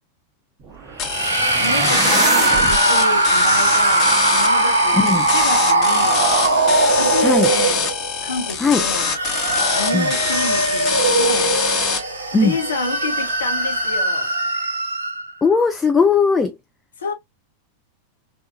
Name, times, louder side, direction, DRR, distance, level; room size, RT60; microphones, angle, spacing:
sound 1, 0.6-2.8, right 4 dB, 25° right, 0.8 m, -26 dB
sound 2, 1.0-12.0, left 6 dB, 35° left, 1.0 m, -24 dB
sound 3, 1.0-8.1 8.8-15.3, right 2 dB, 75° right, 0.6 m, -19 dB
voice 1, 1.6-6.3 6.9-7.9 8.2-9.2 9.7-11.6 12.3-14.3 17.0-17.1, left 3 dB, 70° left, 0.9 m, -28 dB
voice 2, 4.9-5.3 7.2-7.5 8.6-8.8 9.9-10.1 12.3-12.6 15.4-16.6, left 4 dB, 15° left, 0.4 m, -18 dB
3.6 x 2.3 x 2.5 m
figure-of-eight pair, 90°, 0 cm